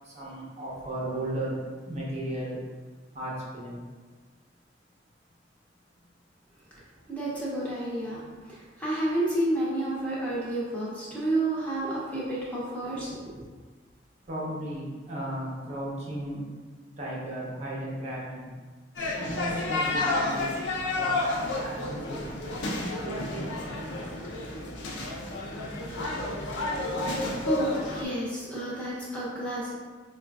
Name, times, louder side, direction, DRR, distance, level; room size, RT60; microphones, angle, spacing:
voice 1, 0.1-2.6 3.1-3.8 14.3-16.4 17.0-18.5 19.2-20.7 21.0-22.4 22.7-23.7, right 1 dB, 35° right, -5 dB, 0.7 m, -35 dB
voice 2, 7.1-13.2 27.4-29.7, right 1 dB, 10° left, -8 dB, 0.7 m, -30 dB
sound 1, 19.0-28.0, left 2 dB, 75° left, 0.6 m, -31 dB
4.9 x 2.4 x 2.3 m, 1.4 s
head